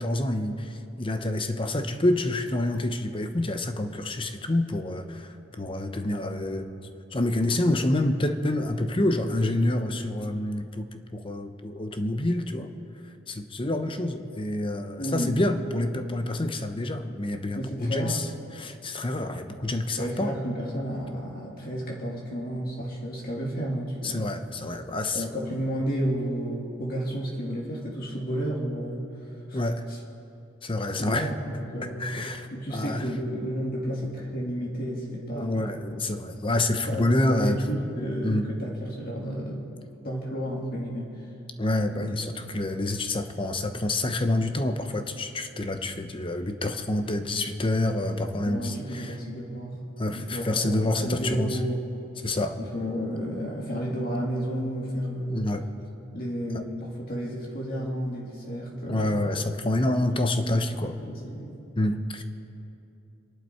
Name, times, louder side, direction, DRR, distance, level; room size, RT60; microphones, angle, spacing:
voice 1, 0.0-6.7 7.1-12.7 13.3-18.3 18.6-20.3 24.0-25.2 29.5-29.8 30.6-31.3 32.0-33.1 35.3-37.6 38.2-38.5 41.6-49.2 50.0-51.6 52.2-52.6 53.7-53.8 55.3-55.7 56.5-56.6 58.9-60.9 61.8-62.2, left 1 dB, 25° left, 8 dB, 0.8 m, -27 dB
voice 2, 15.0-15.4 17.6-18.2 20.0-24.3 25.1-29.1 29.5-29.6 29.9-30.0 31.0-32.2 32.5-36.0 36.7-39.6 40.0-41.3 41.9-42.1 48.4-49.8 50.1-51.8 52.6-55.5 56.1-59.3 60.4-61.6, equal, 45° left, -3 dB, 2.3 m, -32 dB
26.5 x 11.5 x 4.4 m, 2.8 s
head